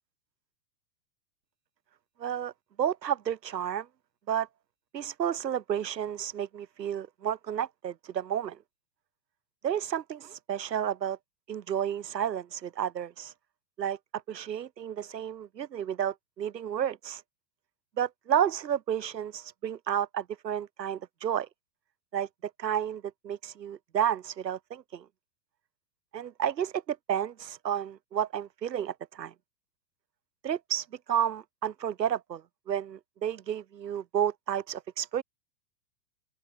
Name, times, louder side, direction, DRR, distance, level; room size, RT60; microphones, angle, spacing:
voice 1, 2.2-2.5 2.8-3.9 4.3-4.5 4.9-8.6 9.6-11.2 11.5-13.3 13.8-14.0 14.3-17.2 18.0-21.5 22.1-25.0 26.1-29.3 30.4-32.4 32.7-35.2, right 9 dB, 75° right, 5.6 m, -31 dB
open air
hypercardioid pair, 115°, 50 cm